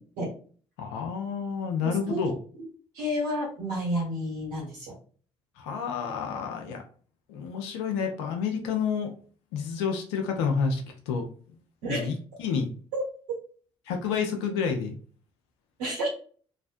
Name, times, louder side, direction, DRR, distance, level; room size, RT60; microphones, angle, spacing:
voice 1, 0.8-2.3 5.6-6.8 7.3-9.1 9.5-11.3 11.9-12.7 13.9-15.0, left 6 dB, 65° left, 4 dB, 0.5 m, -29 dB
voice 2, 1.8-2.2 2.9-4.9 11.8-12.1 12.9-13.0 15.8-16.1, equal, 65° right, -5 dB, 1.3 m, -30 dB
3.2 x 2.5 x 2.5 m, 0.42 s
figure-of-eight pair, 45°, 15 cm